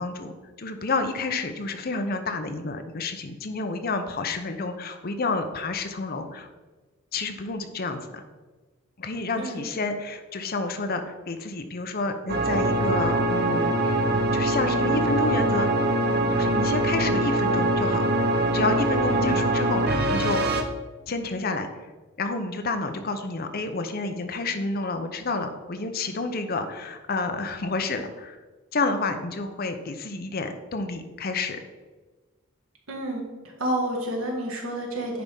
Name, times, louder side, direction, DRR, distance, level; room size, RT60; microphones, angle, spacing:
voice 1, 0.0-6.5 7.1-8.2 9.0-14.1 14.3-15.7 16.3-18.0 18.5-20.4 21.1-21.7 22.2-28.4 28.7-31.6, left 3 dB, 45° left, 7 dB, 0.7 m, -29 dB
sound 1, 12.3-20.6, right 1 dB, 50° right, 0.7 m, -23 dB
voice 2, 19.1-19.5 32.9-33.2 33.6-35.2, right 1 dB, 75° right, 0 dB, 1.7 m, -29 dB
9.5 x 3.6 x 5.3 m, 1.3 s
head